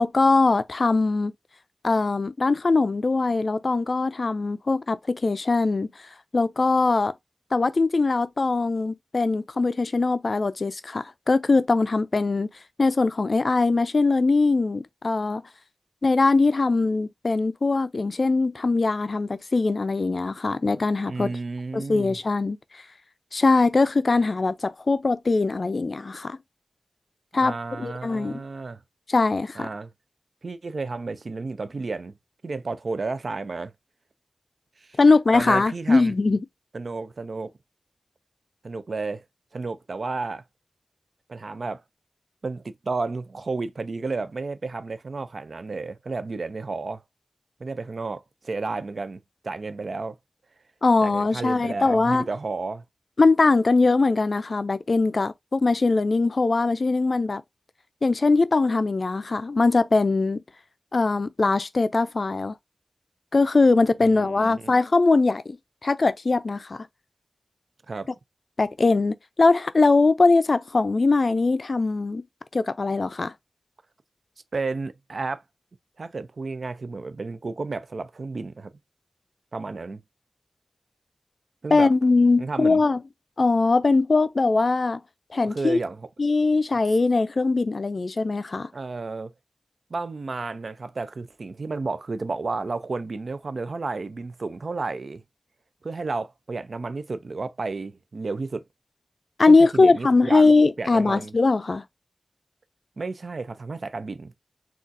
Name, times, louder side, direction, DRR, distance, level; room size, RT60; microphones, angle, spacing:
voice 1, 0.0-1.3 1.8-5.9 6.3-7.1 7.5-12.5 12.8-15.4 16.0-21.3 21.7-22.6 23.3-26.4 27.3-28.4 29.1-29.7 35.0-36.4 50.8-52.3 53.2-57.4 58.0-60.4 60.9-62.5 63.3-65.6 65.8-66.9 68.6-72.2 72.5-73.3 81.7-83.0 83.4-85.0 85.3-85.8 86.2-88.7 99.4-101.8, left 3 dB, 60° left, 0.3 m, -21 dB
voice 2, 21.1-22.2 27.4-28.8 29.6-29.9 30.4-32.2 32.4-33.7 34.8-35.0 35.3-36.1 36.7-37.5 38.6-39.2 39.5-40.4 41.3-41.8 42.4-47.0 47.6-50.2 51.0-52.8 64.0-64.7 67.9-68.1 74.5-75.4 76.0-78.7 79.5-80.0 81.6-81.9 82.4-82.8 85.4-86.1 88.7-89.3 89.9-95.2 95.8-98.6 99.5-100.5 100.8-101.3 103.0-104.3, right 3 dB, 70° right, 0.4 m, -32 dB
3.8 x 2.3 x 2.6 m
cardioid pair, 45°, 0 cm